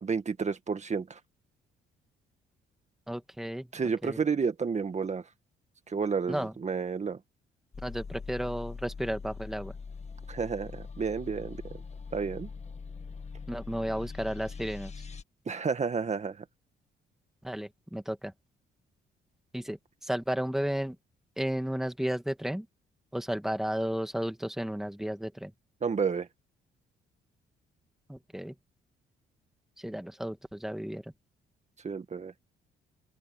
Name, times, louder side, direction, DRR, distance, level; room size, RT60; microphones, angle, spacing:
voice 1, 0.0-1.2 3.7-5.2 5.9-7.2 10.3-11.6 12.1-12.5 15.5-16.4 25.8-26.3 31.8-32.3, right 5 dB, 35° right, 1.8 m, -31 dB
voice 2, 3.1-3.7 4.0-4.2 6.3-6.5 7.8-9.7 13.5-14.9 17.4-18.3 19.5-21.0 21.4-22.7 23.1-25.5 28.1-28.5 29.8-31.1, equal, ahead, 1.9 m, -33 dB
sound 1, 7.7-15.2, left 5 dB, 35° left, 1.9 m, -42 dB
open air
cardioid pair, 90°, 20 cm